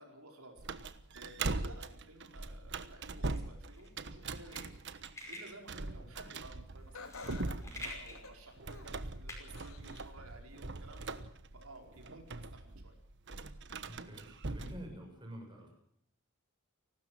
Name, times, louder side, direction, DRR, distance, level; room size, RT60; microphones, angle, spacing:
voice 1, 0.0-4.7 5.3-11.2 11.5-12.9, right 2 dB, 85° right, 3 dB, 4.8 m, -55 dB
sound 1, 0.6-14.9, right 3 dB, 55° right, 1.2 m, -42 dB
sound 2, 3.2-10.4, left 1 dB, 15° left, 5.6 m, -50 dB
Laughter, 6.9-9.1 9.5-10.2 10.7-10.8 11.7-11.8, left 4 dB, 80° left, 3.8 m, -50 dB
voice 2, 13.8-15.7, equal, 20° right, 1 dB, 7.2 m, -48 dB
29.5 x 13.0 x 7.6 m, 0.68 s
head